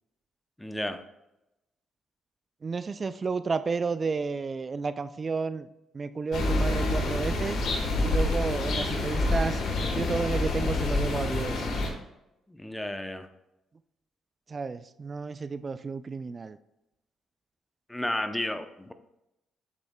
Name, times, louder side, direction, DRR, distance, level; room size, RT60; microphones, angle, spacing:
voice 1, 0.6-1.0 12.5-13.3 17.9-18.9, left 1 dB, 10° left, 9 dB, 0.6 m, -32 dB
voice 2, 2.6-5.7 5.9-7.7 8.0-9.6 9.9-11.7 14.5-16.6, right 4 dB, 35° right, 13 dB, 0.3 m, -32 dB
sound 1, 6.3-11.9, left 2 dB, 70° left, 1.5 m, -27 dB
8.1 x 6.9 x 2.2 m, 0.91 s
cardioid pair, 90°, 0 cm